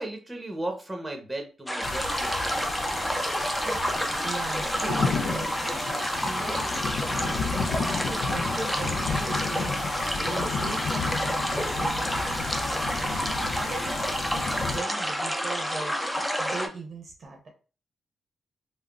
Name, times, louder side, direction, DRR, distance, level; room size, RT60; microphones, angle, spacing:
voice 1, 0.0-3.3, right 1 dB, 15° right, 3 dB, 0.9 m, -36 dB
sound 1, 1.7-16.7, equal, 5° left, 0.5 m, -29 dB
sound 2, 1.8-14.8, left 5 dB, 75° left, 0.4 m, -33 dB
voice 2, 3.5-9.9 10.2-17.5, right 3 dB, 55° right, 2 dB, 0.7 m, -39 dB
3.4 x 2.0 x 2.4 m, 0.34 s
cardioid pair, 65°, 0 cm